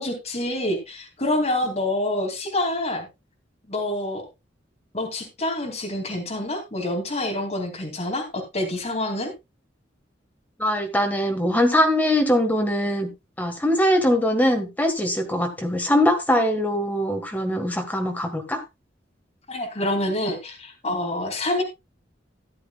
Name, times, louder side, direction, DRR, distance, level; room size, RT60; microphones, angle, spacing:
voice 1, 0.0-3.1 3.7-4.2 4.9-9.3 19.5-21.6, left 1 dB, 35° left, 1 dB, 2.6 m, -27 dB
voice 2, 10.6-13.1 13.4-18.6, left 1 dB, 10° left, 4 dB, 1.5 m, -22 dB
14.0 x 10.5 x 2.3 m, 0.23 s
head